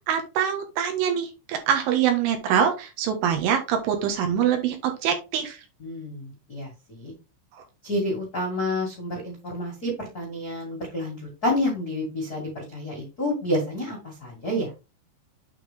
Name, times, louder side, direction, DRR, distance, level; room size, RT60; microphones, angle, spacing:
voice 1, 0.1-5.6, right 8 dB, 75° right, 4 dB, 3.6 m, -24 dB
voice 2, 5.8-7.1 7.8-14.7, left 1 dB, 45° left, -1 dB, 1.2 m, -29 dB
8.5 x 4.5 x 3.5 m, 0.28 s
omnidirectional pair, 6.0 m